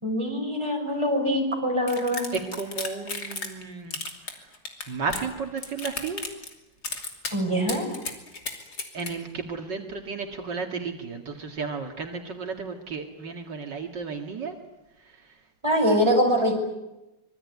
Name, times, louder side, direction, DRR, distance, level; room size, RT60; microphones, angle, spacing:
voice 1, 0.0-2.3 7.3-7.9 15.6-16.5, equal, 15° right, 1 dB, 6.0 m, -23 dB
sound 1, 1.9-3.6 3.9-5.3 5.6-6.5 6.8-7.3 7.7-9.1, left 3 dB, 60° left, 3.5 m, -34 dB
voice 2, 2.3-4.5 4.9-6.2 8.9-14.6 15.0-15.4, right 5 dB, 70° right, 4 dB, 2.6 m, -33 dB
25.5 x 23.0 x 9.5 m, 0.97 s
omnidirectional pair, 2.0 m